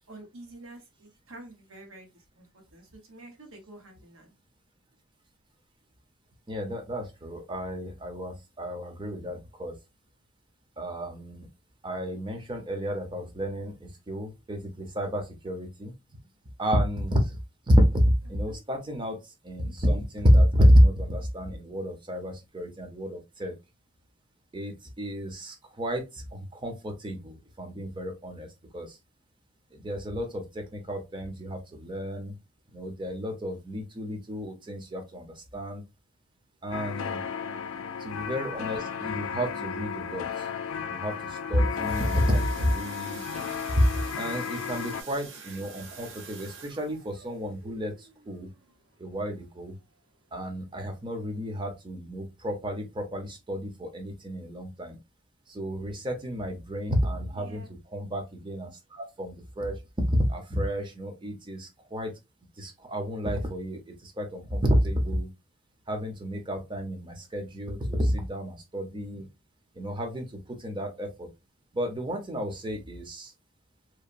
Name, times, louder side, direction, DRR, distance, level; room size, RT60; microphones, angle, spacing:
voice 1, 0.1-4.3 18.5-18.6 37.2-37.6 57.3-57.7, right 2 dB, 85° right, 2 dB, 0.9 m, -48 dB
voice 2, 6.5-9.7 10.8-11.5 11.8-15.9 16.6-17.4 17.7-23.5 24.5-29.0 29.7-32.4 32.7-35.8 36.6-37.2 38.0-40.5 40.9-43.2 43.8-48.5 49.0-49.8 50.3-55.0 55.5-62.1 62.6-65.3 65.9-69.3 69.7-71.3 71.7-73.3, equal, 25° right, 3 dB, 0.6 m, -29 dB
sound 1, 36.7-45.0, left 7 dB, 80° left, 0.3 m, -34 dB
sound 2, 41.4-49.9 50.4-50.6 50.9-51.0 51.5-51.6, right 5 dB, 65° right, 0.6 m, -47 dB
2.9 x 2.0 x 2.5 m, 0.24 s
head